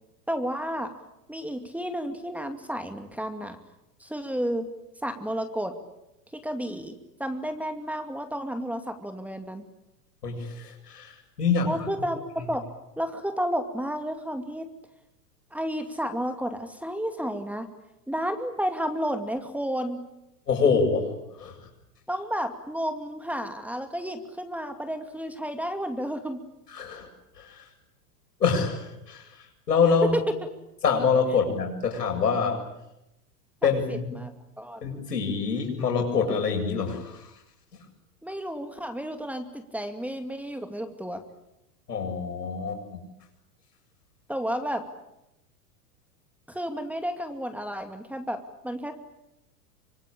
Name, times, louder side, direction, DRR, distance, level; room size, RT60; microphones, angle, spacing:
voice 1, 0.3-0.9 1.3-3.6 4.0-4.7 5.0-5.7 6.3-9.6 11.6-12.6 13.0-14.7 15.5-17.7 18.1-20.1 22.1-26.4 30.1-30.3 33.9-34.8 38.2-41.2 44.3-44.8 46.5-48.9, equal, 5° right, 7 dB, 2.4 m, -31 dB
voice 2, 10.2-11.7 12.4-12.5 20.5-21.1 21.4-21.7 26.7-27.1 27.4-27.6 28.4-30.2 30.8-32.6 33.6-34.1 34.8-37.3 41.9-43.0, left 5 dB, 90° left, 3 dB, 7.9 m, -26 dB
25.5 x 25.0 x 8.8 m, 0.88 s
hypercardioid pair, 110°, 46 cm